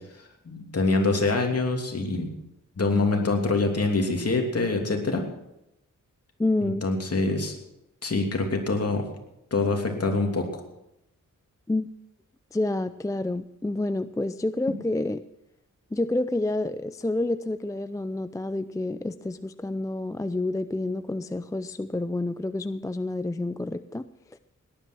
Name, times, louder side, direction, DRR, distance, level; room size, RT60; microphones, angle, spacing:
voice 1, 0.4-2.3 2.8-5.3 6.6-7.5 8.0-9.0 9.5-10.6, left 3 dB, 50° left, 2 dB, 2.9 m, -25 dB
voice 2, 6.4-6.9 11.7-11.9 12.5-15.2 15.9-24.4, left 2 dB, 10° left, 12 dB, 0.4 m, -29 dB
17.5 x 11.0 x 6.2 m, 0.84 s
wide cardioid pair, 100°, 32 cm